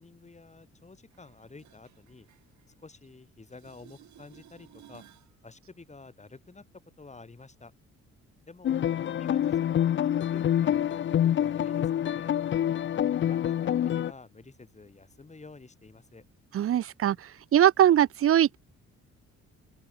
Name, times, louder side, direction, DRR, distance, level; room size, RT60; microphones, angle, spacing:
voice 1, 0.0-2.3 2.8-5.0 5.4-6.7 7.0-7.7 8.5-8.8 9.1-12.3 13.2-16.2, left 3 dB, 25° left, 3.7 m, -50 dB
sound 1, 1.1-3.2 3.4-5.4 11.1-11.2, right 11 dB, 70° right, 6.3 m, -57 dB
sound 2, 8.6-14.1, left 10 dB, 40° left, 0.5 m, -26 dB
voice 2, 16.5-18.6, right 11 dB, 50° right, 0.6 m, -22 dB
open air
cardioid pair, 90°, 30 cm